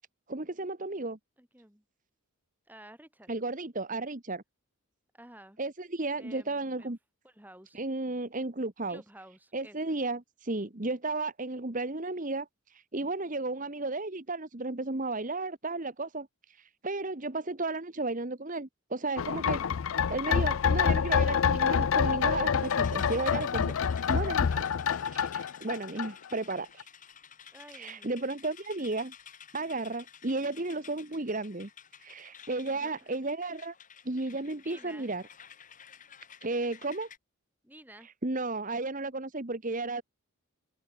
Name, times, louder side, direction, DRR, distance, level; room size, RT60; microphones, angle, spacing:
voice 1, 0.3-1.2 3.3-4.4 5.6-7.0 7.7-9.0 9.5-19.6 20.1-23.7 24.1-24.5 25.1-26.9 27.7-29.1 29.5-31.7 32.0-33.7 34.0-35.2 36.4-37.1 38.0-40.0, right 2 dB, 35° right, 1.3 m, -34 dB
voice 2, 1.4-1.8 2.7-3.4 5.1-5.6 6.2-6.9 7.2-7.8 8.9-10.0 24.5-24.9 27.5-28.2 32.7-33.0 34.6-35.1 37.6-38.1, right 1 dB, 10° right, 3.8 m, -52 dB
sound 1, 19.2-26.5 26.8-26.9, left 7 dB, 65° left, 0.4 m, -27 dB
sound 2, 22.6-37.2, left 8 dB, 35° left, 3.1 m, -52 dB
open air
head